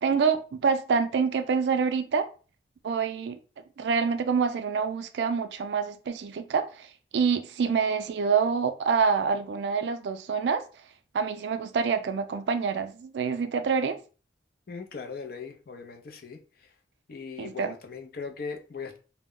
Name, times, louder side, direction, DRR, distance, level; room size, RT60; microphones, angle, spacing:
voice 1, 0.0-2.3 2.8-3.4 3.8-10.6 11.1-14.0 17.4-17.7, right 5 dB, 75° right, 0.4 m, -26 dB
voice 2, 14.7-16.4 17.1-19.0, left 5 dB, 55° left, 0.5 m, -39 dB
2.1 x 2.1 x 3.6 m
head